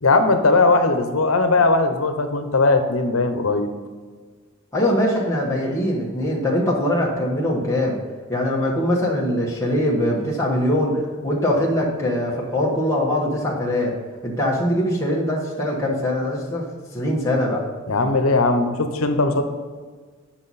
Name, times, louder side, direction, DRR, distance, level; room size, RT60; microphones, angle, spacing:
voice 1, 0.0-3.7 17.9-19.4, left 3 dB, 85° left, 7 dB, 0.9 m, -19 dB
voice 2, 4.7-8.0 8.3-13.9 14.2-16.6 16.9-17.6, left 1 dB, 15° left, -4 dB, 1.3 m, -22 dB
9.9 x 6.1 x 4.1 m, 1.5 s
head